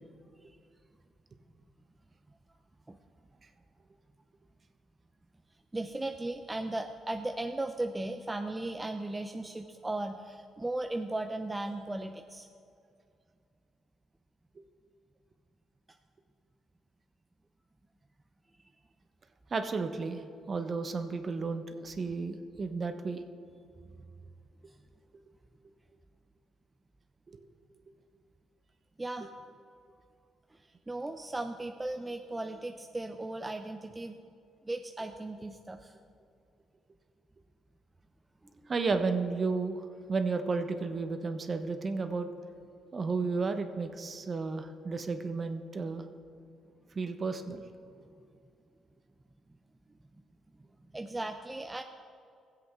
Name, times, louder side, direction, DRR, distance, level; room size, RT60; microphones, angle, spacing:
voice 1, 5.7-12.5 24.7-24.8 29.0-29.3 30.5-34.2 34.6-36.0 38.4-38.7 50.6-50.7 50.9-51.8, right 2 dB, 15° right, 5 dB, 0.5 m, -37 dB
voice 2, 19.5-23.2 27.3-27.5 38.7-42.3 42.9-46.0 46.9-47.6, right 4 dB, 40° right, 8 dB, 0.8 m, -33 dB
17.0 x 7.9 x 3.6 m, 2.4 s
cardioid pair, 90°, 0 cm